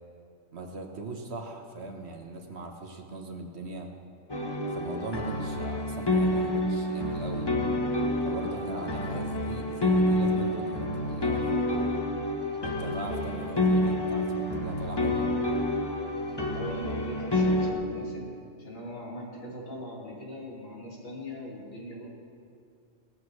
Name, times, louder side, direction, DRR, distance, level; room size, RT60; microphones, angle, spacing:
voice 1, 0.5-3.9 4.7-7.5 8.2-11.9 12.6-15.3, right 3 dB, 55° right, 3 dB, 1.4 m, -39 dB
sound 1, 4.3-17.7, left 1 dB, 20° left, 1.0 m, -28 dB
voice 2, 16.3-18.3 18.6-22.1, equal, 80° left, -5 dB, 3.3 m, -40 dB
18.0 x 14.0 x 3.2 m, 2.3 s
omnidirectional pair, 1.4 m